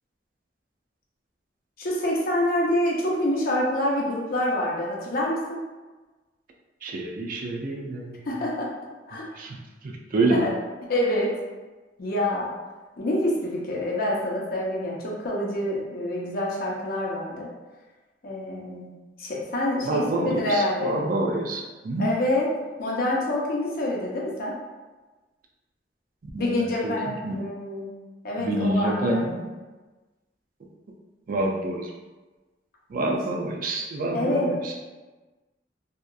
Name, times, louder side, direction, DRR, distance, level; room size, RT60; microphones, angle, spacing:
voice 1, 1.8-5.6 8.3-8.7 9.1-9.3 10.2-10.5 10.9-11.3 12.0-12.5 13.0-17.5 18.2-18.9 19.2-21.0 22.0-22.5 22.8-24.6 26.4-27.9 28.2-29.3 34.1-34.7, left 1 dB, 55° left, -3 dB, 0.6 m, -26 dB
voice 2, 6.8-8.2 9.4-9.6 9.8-10.5 19.9-22.1 26.3-26.9 27.2-27.4 28.4-29.5 31.3-31.9 32.9-34.7, right 2 dB, 50° right, 0 dB, 0.4 m, -27 dB
2.8 x 2.4 x 2.3 m, 1.2 s
head